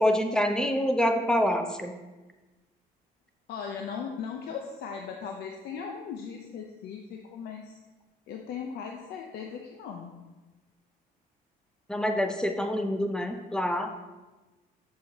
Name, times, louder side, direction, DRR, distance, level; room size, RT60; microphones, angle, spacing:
voice 1, 0.0-2.0 11.9-13.9, equal, 5° left, 5 dB, 0.6 m, -26 dB
voice 2, 3.5-7.8 8.3-10.2, left 6 dB, 70° left, 2 dB, 0.6 m, -38 dB
7.6 x 5.5 x 2.8 m, 1.2 s
cardioid pair, 110°, 17 cm